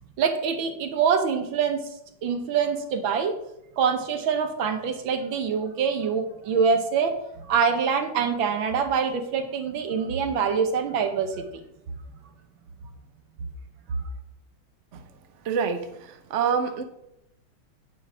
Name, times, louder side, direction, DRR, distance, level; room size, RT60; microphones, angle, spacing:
voice 1, 0.2-1.8 2.2-3.4 3.8-11.6 13.9-14.0, right 6 dB, 75° right, 7 dB, 1.7 m, -25 dB
voice 2, 15.4-16.8, right 6 dB, 55° right, 7 dB, 0.8 m, -27 dB
9.9 x 5.8 x 4.8 m, 0.80 s
omnidirectional pair, 2.2 m